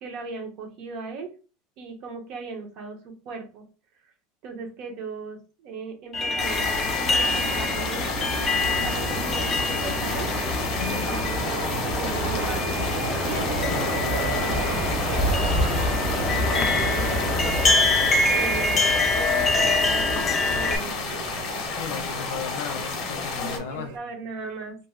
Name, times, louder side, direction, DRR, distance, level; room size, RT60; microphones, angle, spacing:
voice 1, 0.0-1.3 1.8-3.0 3.2-3.6 4.4-8.1 8.5-10.3 10.8-12.6 13.2-15.2 16.1-17.9 18.3-21.1 23.4-24.7, right 4 dB, 50° right, 3 dB, 0.8 m, -38 dB
sound 1, 6.1-20.8, left 2 dB, 20° left, 0.4 m, -25 dB
sound 2, 6.4-23.6, left 4 dB, 45° left, 0.8 m, -31 dB
sound 3, 7.0-24.0, right 6 dB, 75° right, 0.4 m, -33 dB
voice 2, 21.7-23.9, left 8 dB, 80° left, 9 dB, 0.5 m, -35 dB
2.6 x 2.0 x 3.6 m, 0.35 s
supercardioid pair, 155°, 0 cm